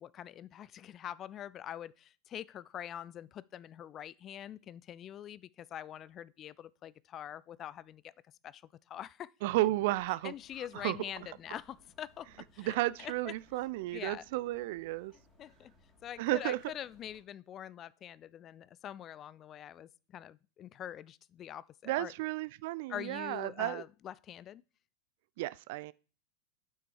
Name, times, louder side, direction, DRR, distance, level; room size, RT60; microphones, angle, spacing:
voice 1, 0.0-8.1 8.4-8.6 8.9-9.3 10.2-13.3 13.9-14.2 15.4-15.7 16.0-22.1 22.9-24.6, left 10 dB, 30° left, 0.3 m, -44 dB
voice 2, 9.4-10.3 10.8-11.0 12.6-15.1 16.2-16.6 21.9-23.8 25.4-25.9, right 18 dB, 50° right, 0.3 m, -33 dB
sound 1, 9.8-17.2, left 2 dB, 10° left, 2.7 m, -66 dB
8.0 x 6.0 x 4.6 m
figure-of-eight pair, 90°, 0 cm